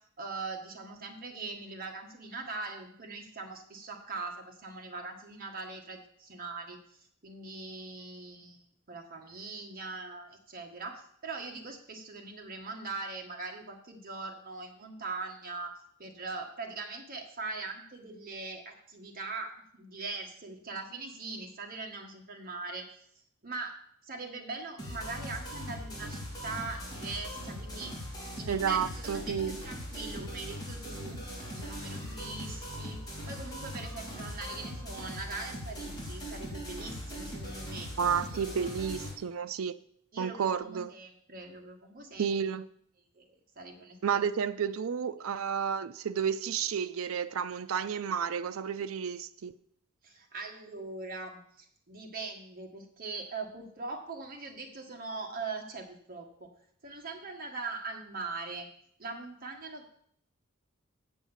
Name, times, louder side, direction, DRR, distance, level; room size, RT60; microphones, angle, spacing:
voice 1, 0.2-22.9 23.4-23.7 24.0-27.9 28.4-29.4 29.6-37.9 40.1-42.3 43.1-43.3 43.5-44.3 50.0-56.5 56.8-58.7 59.0-60.0, right 3 dB, 45° right, 1.6 m, -41 dB
sound 1, 24.8-39.1, equal, 20° left, 2.9 m, -40 dB
voice 2, 28.5-29.6 38.0-39.8 40.2-40.9 42.2-42.6 44.0-49.5, right 7 dB, 75° right, 0.4 m, -31 dB
8.1 x 6.2 x 7.2 m
head